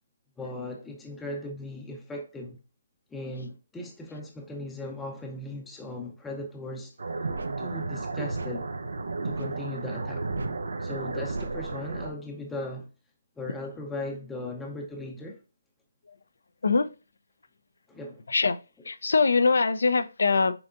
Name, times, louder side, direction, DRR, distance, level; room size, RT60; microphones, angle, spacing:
voice 1, 0.4-2.6 3.1-6.9 7.6-8.7 9.2-10.3 10.8-12.9 13.4-15.4 17.9-18.2, left 1 dB, 5° left, 0.6 m, -38 dB
sound 1, 7.0-12.1, right 3 dB, 75° right, 0.6 m, -33 dB
voice 2, 18.9-20.5, left 4 dB, 75° left, 0.5 m, -22 dB
6.0 x 3.6 x 2.5 m
hypercardioid pair, 160°, 0 cm